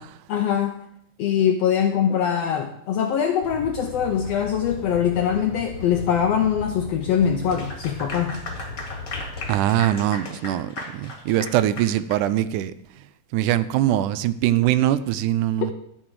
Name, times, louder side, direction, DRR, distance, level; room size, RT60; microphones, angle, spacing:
voice 1, 0.3-0.8 1.2-8.4 15.6-15.7, left 8 dB, 80° left, 5 dB, 1.4 m, -22 dB
sound 1, 3.4-9.6, left 3 dB, 55° left, 1.9 m, -37 dB
Clapping / Applause, 7.4-12.3, left 2 dB, 40° left, 2.2 m, -36 dB
voice 2, 9.5-12.7 13.3-15.7, right 13 dB, 85° right, 14 dB, 2.1 m, -22 dB
13.0 x 7.7 x 4.7 m, 0.72 s
omnidirectional pair, 3.6 m